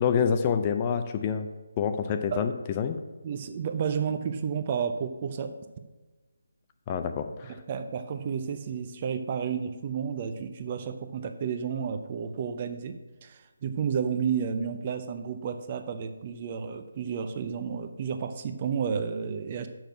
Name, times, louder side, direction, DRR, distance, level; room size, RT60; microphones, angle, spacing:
voice 1, 0.0-1.5 1.8-3.0 6.9-7.6, left 7 dB, 25° left, 8 dB, 0.5 m, -27 dB
voice 2, 3.2-5.5 7.7-19.7, right 7 dB, 30° right, 8 dB, 0.6 m, -31 dB
6.4 x 6.3 x 6.0 m, 1.2 s
figure-of-eight pair, 150°, 0 cm